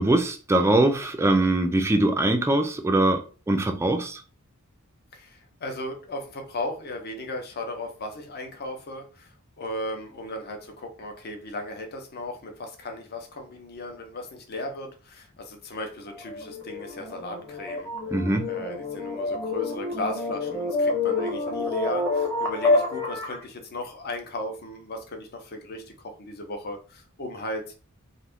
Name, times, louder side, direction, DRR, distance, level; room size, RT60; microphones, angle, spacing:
voice 1, 0.0-4.2 18.1-18.5, right 2 dB, 10° right, 0.3 m, -22 dB
voice 2, 5.1-17.9 18.5-27.8, left 1 dB, 45° left, 0.6 m, -36 dB
sound 1, 16.1-23.4, left 3 dB, 10° left, 0.8 m, -28 dB
2.5 x 2.4 x 3.5 m
head